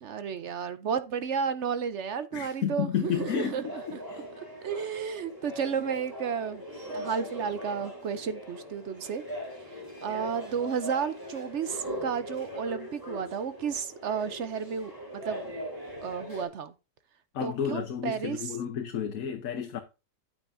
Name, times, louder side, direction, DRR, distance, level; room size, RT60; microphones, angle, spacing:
voice 1, 0.0-4.0 4.6-6.6 6.9-9.2 10.0-15.5 16.0-16.7 17.4-18.5, right 7 dB, 55° right, 0.8 m, -32 dB
voice 2, 2.3-4.2 17.3-19.8, left 8 dB, 60° left, 1.2 m, -32 dB
sound 1, 3.0-16.5, equal, 10° right, 3.8 m, -40 dB
9.2 x 9.0 x 2.6 m
omnidirectional pair, 1.8 m